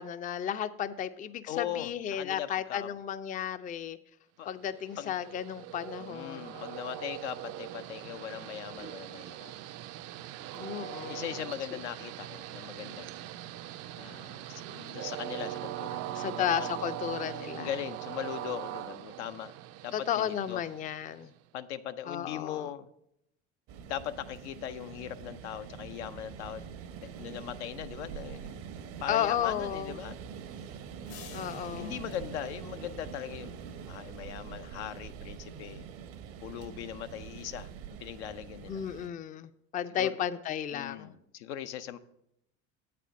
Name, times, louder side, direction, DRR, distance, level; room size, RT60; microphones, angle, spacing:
voice 1, 0.0-4.0 4.5-6.9 10.5-11.3 16.2-17.7 19.9-21.3 22.1-22.7 29.1-30.0 31.3-32.0 38.7-41.1, left 9 dB, 25° left, 13 dB, 0.4 m, -33 dB
voice 2, 1.5-2.9 4.4-4.5 5.0-5.1 6.0-9.5 11.0-13.3 14.0-16.8 17.6-19.5 19.8-20.6 21.5-22.9 23.9-26.7 27.0-28.6 29.0-30.2 31.3-35.9 36.4-37.7 38.0-38.8 39.9-40.2 40.7-42.0, left 10 dB, 80° left, 10 dB, 0.5 m, -40 dB
Train, 4.6-21.4, right 14 dB, 50° right, 0.4 m, -41 dB
sound 1, 23.7-39.1, right 7 dB, 70° right, 0.8 m, -44 dB
sound 2, 31.1-33.8, left 9 dB, 50° left, 0.8 m, -52 dB
8.0 x 4.2 x 6.2 m, 0.79 s
hypercardioid pair, 75°, 33 cm